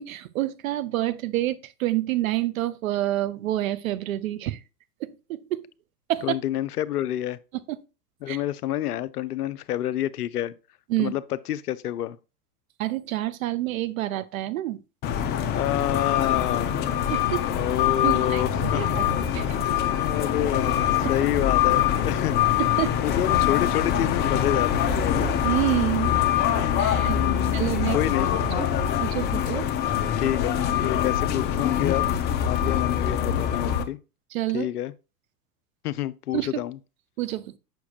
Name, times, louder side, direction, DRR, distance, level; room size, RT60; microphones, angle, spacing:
voice 1, 0.0-4.6 5.0-5.6 6.1-6.4 7.7-7.8 8.3-8.4 10.9-11.1 12.8-14.8 17.1-17.5 18.0-18.4 18.7-19.1 19.3-19.6 22.6-22.9 25.4-26.2 26.8-27.2 27.5-28.0 28.6-28.7 29.0-29.7 34.3-34.7 36.3-36.6 37.2-37.6, right 15 dB, 55° right, 0.6 m, -28 dB
voice 2, 6.2-7.4 8.2-10.5 11.0-12.2 15.5-16.7 17.5-18.9 20.0-22.4 23.0-25.3 27.1-27.6 27.9-28.3 30.2-32.1 32.4-34.0 34.5-34.9 35.8-36.8, left 12 dB, 70° left, 0.5 m, -28 dB
sound 1, 15.0-33.8, left 9 dB, 20° left, 0.4 m, -24 dB
6.9 x 5.8 x 2.4 m
figure-of-eight pair, 85°, 48 cm